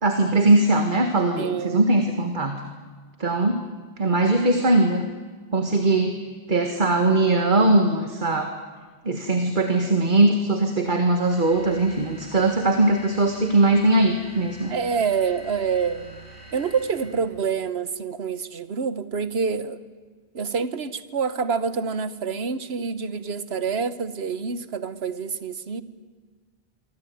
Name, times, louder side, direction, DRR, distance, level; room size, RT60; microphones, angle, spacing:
voice 1, 0.0-2.6 3.2-3.6 4.0-5.0 5.5-6.2 6.5-8.5 9.1-14.7, right 2 dB, 50° right, 6 dB, 1.8 m, -20 dB
voice 2, 1.4-1.9 14.7-16.3 16.5-19.8 20.3-25.8, right 6 dB, 75° right, 14 dB, 1.4 m, -27 dB
sound 1, 11.2-17.4, right 1 dB, 80° left, 8.2 m, -46 dB
26.0 x 24.0 x 9.4 m, 1.5 s
omnidirectional pair, 1.1 m